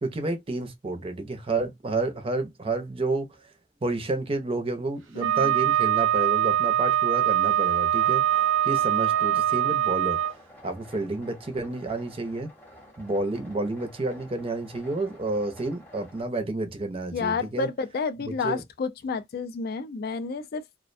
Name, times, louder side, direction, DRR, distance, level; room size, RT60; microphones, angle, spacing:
voice 1, 0.0-3.3 3.8-8.2 8.6-10.2 10.6-12.5 13.0-17.7 18.2-18.6, right 2 dB, 30° right, 0.5 m, -30 dB
voice 2, 5.1-5.5 17.1-20.6, left 4 dB, 50° left, 0.3 m, -30 dB
Wind instrument woodwind instrument, 5.2-10.3, right 11 dB, 70° right, 0.5 m, -23 dB
sound 1, 7.5-16.2, left 1 dB, 10° left, 0.8 m, -50 dB
2.4 x 2.1 x 2.5 m
head